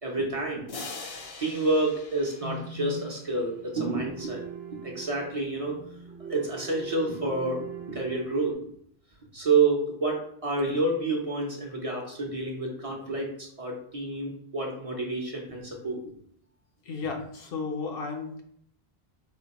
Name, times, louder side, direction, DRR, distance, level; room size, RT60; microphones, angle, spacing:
voice 1, 0.0-0.7 1.4-4.4 4.8-5.8 6.2-8.6 9.3-16.0, right 3 dB, 40° right, -1 dB, 0.8 m, -29 dB
sound 1, 0.7-3.4, left 3 dB, 45° left, 0.5 m, -42 dB
voice 2, 0.9-1.3 16.8-18.4, left 4 dB, 65° left, 2 dB, 0.9 m, -34 dB
sound 2, 3.2-8.5, right 8 dB, 85° right, 0.9 m, -42 dB
4.2 x 2.1 x 4.0 m, 0.65 s
omnidirectional pair, 1.0 m